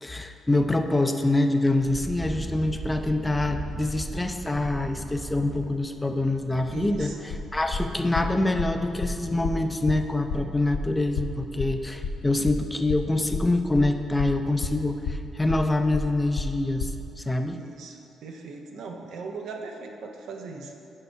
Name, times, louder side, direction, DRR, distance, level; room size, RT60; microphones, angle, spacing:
voice 1, 0.0-7.1 7.5-17.6, left 2 dB, 15° left, 6 dB, 0.4 m, -25 dB
Wind, 1.7-9.9, right 2 dB, 30° right, 0.8 m, -38 dB
voice 2, 6.7-7.2 17.5-20.8, right 4 dB, 75° right, 2 dB, 0.7 m, -39 dB
sound 1, 7.3-17.0, left 3 dB, 85° left, 0.5 m, -32 dB
6.7 x 4.5 x 5.5 m, 2.8 s
cardioid pair, 85°, 0 cm